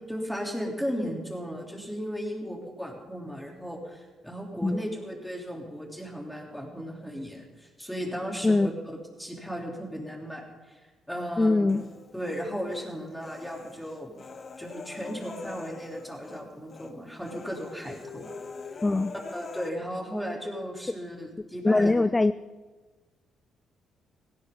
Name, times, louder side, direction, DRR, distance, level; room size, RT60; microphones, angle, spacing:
voice 1, 0.1-11.7 12.1-14.2 14.6-18.3 19.3-21.9, equal, ahead, -1 dB, 3.7 m, -36 dB
voice 2, 11.4-11.8 18.8-19.1 21.6-22.3, left 2 dB, 20° left, 14 dB, 0.4 m, -22 dB
Human voice, 11.7-12.9 13.2-16.4 16.7-16.9 17.2-19.7, left 4 dB, 40° left, 1.1 m, -43 dB
17.0 x 17.0 x 4.0 m, 1.3 s
cardioid pair, 90°, 0 cm